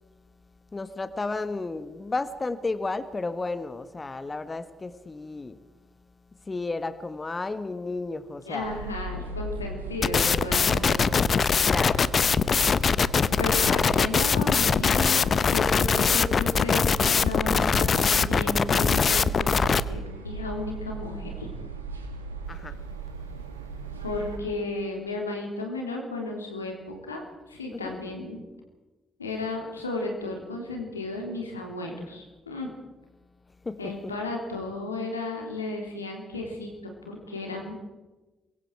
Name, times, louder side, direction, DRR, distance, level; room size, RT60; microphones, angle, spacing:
voice 1, 0.7-5.6 6.5-8.9 11.7-12.0 22.5-22.8 27.7-28.1 33.6-34.1, left 3 dB, 30° left, 1.5 m, -33 dB
voice 2, 8.4-11.2 13.3-21.5 24.0-28.4 29.2-32.7 33.8-37.7, left 2 dB, 90° left, 3.4 m, -34 dB
sound 1, 8.6-24.4, right 4 dB, 90° right, 2.0 m, -37 dB
sound 2, 10.0-19.8, left 6 dB, 45° left, 0.9 m, -22 dB
27.5 x 22.5 x 4.7 m
figure-of-eight pair, 40°, 0 cm